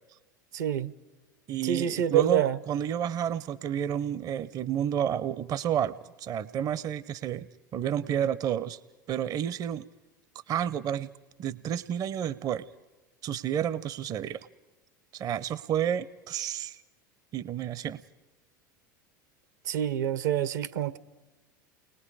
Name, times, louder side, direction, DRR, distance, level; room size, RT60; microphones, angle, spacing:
voice 1, 0.5-0.9 1.6-2.6 19.7-21.0, right 11 dB, 65° right, 0.9 m, -26 dB
voice 2, 1.5-7.5 7.7-8.8 9.1-9.9 10.5-11.1 11.4-12.6 13.2-14.5 15.1-16.8 17.3-18.0, right 9 dB, 35° right, 0.6 m, -30 dB
29.5 x 21.0 x 4.9 m
figure-of-eight pair, 80°, 10 cm